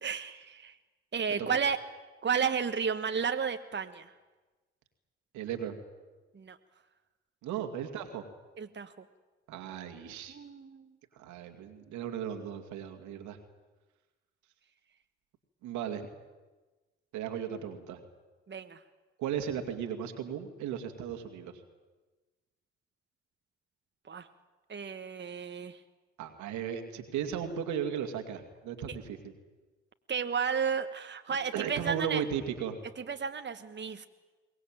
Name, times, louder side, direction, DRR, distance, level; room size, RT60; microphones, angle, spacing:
voice 1, 0.0-0.8 1.1-1.8 2.2-4.1 6.3-6.6 8.6-8.9 10.3-10.9 18.5-18.8 24.1-24.3 24.7-25.8 30.1-32.2 33.0-34.1, right 6 dB, 40° right, 8 dB, 1.3 m, -32 dB
voice 2, 5.3-5.8 7.4-8.2 9.5-10.4 11.1-13.4 15.6-16.1 17.1-18.0 19.2-21.6 26.2-29.3 31.3-32.8, right 8 dB, 80° right, 6 dB, 2.3 m, -36 dB
23.0 x 19.0 x 8.9 m, 1.2 s
hypercardioid pair, 45°, 29 cm